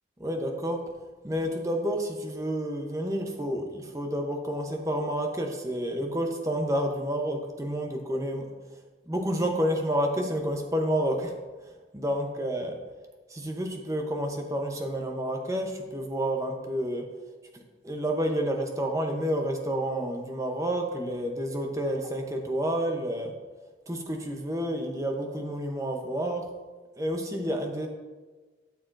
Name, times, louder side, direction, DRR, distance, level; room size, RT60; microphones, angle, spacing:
voice 1, 0.2-0.8 1.2-8.4 9.1-11.3 11.9-12.8 13.3-17.1 17.5-23.3 23.9-26.5 27.0-27.9, equal, 15° right, 3 dB, 0.8 m, -29 dB
12.5 x 6.9 x 2.6 m, 1.3 s
head